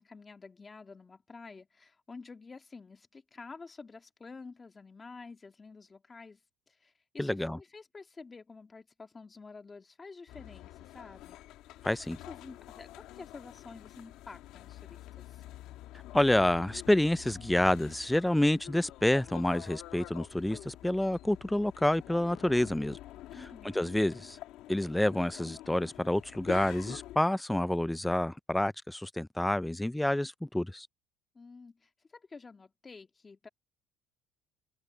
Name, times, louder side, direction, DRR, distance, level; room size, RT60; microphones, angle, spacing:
voice 1, 0.0-6.4 6.7-11.4 12.2-15.4 23.3-23.8 31.3-33.5, left 4 dB, 20° left, 2.0 m, -50 dB
voice 2, 7.2-7.6 11.8-12.2 16.1-23.0 23.6-24.4 24.7-30.9, left 1 dB, 5° left, 0.4 m, -28 dB
sound 1, 10.3-27.2, left 15 dB, 70° left, 2.1 m, -48 dB
open air
cardioid pair, 115°, 0 cm